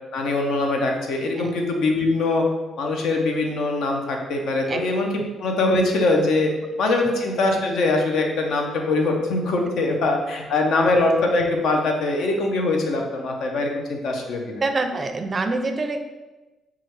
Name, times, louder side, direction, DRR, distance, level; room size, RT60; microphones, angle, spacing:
voice 1, 0.1-2.4 2.8-6.5 6.8-14.6, left 2 dB, 75° left, 2 dB, 0.7 m, -22 dB
voice 2, 14.6-16.0, right 3 dB, 35° right, 6 dB, 0.4 m, -26 dB
5.6 x 2.3 x 3.2 m, 1.1 s
cardioid pair, 90°, 0 cm